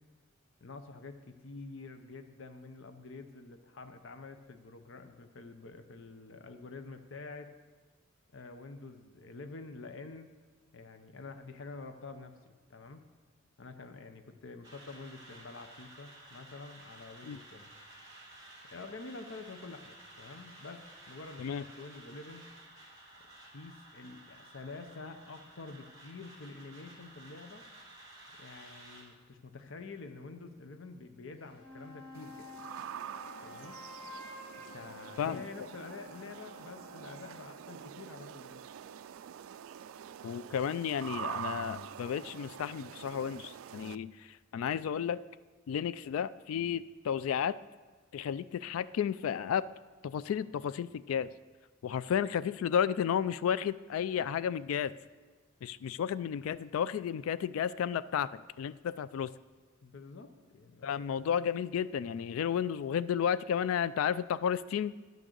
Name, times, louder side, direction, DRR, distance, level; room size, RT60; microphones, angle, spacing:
voice 1, 0.6-7.5 8.3-10.3 10.7-13.0 13.6-17.7 18.7-22.4 23.4-27.7 28.4-32.5 33.4-33.8 34.7-38.6 59.8-61.1, left 3 dB, 65° left, 8 dB, 0.7 m, -48 dB
sound 1, 14.6-29.0, right 1 dB, 20° right, 3.0 m, -54 dB
sound 2, 31.3-37.5, left 2 dB, 30° left, 2.3 m, -51 dB
sound 3, 32.1-44.0, right 9 dB, 80° right, 0.3 m, -45 dB
voice 2, 40.2-45.2 45.7-47.6 48.1-49.6 50.0-51.3 51.8-54.9 55.6-59.3 60.8-64.9, left 8 dB, 85° left, 16 dB, 0.3 m, -32 dB
10.5 x 6.2 x 6.7 m, 1.3 s
head